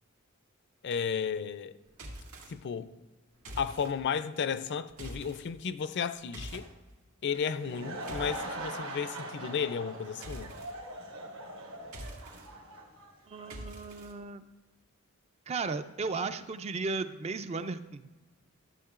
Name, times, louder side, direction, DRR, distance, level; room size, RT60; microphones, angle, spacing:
voice 1, 0.8-1.8 2.5-2.9 3.6-6.7 7.2-10.5, left 6 dB, 55° left, 0.4 m, -33 dB
sound 1, 1.9-2.5 3.4-3.9 4.9-5.4 6.3-6.7 7.7-8.5 10.2-10.7 11.8-12.5 13.5-14.1, right 1 dB, 90° right, 1.9 m, -44 dB
Laughter / Crowd, 7.4-13.7, right 1 dB, 65° right, 1.3 m, -42 dB
voice 2, 13.3-14.4 15.5-18.0, right 4 dB, 30° right, 0.3 m, -35 dB
13.0 x 7.2 x 2.4 m
head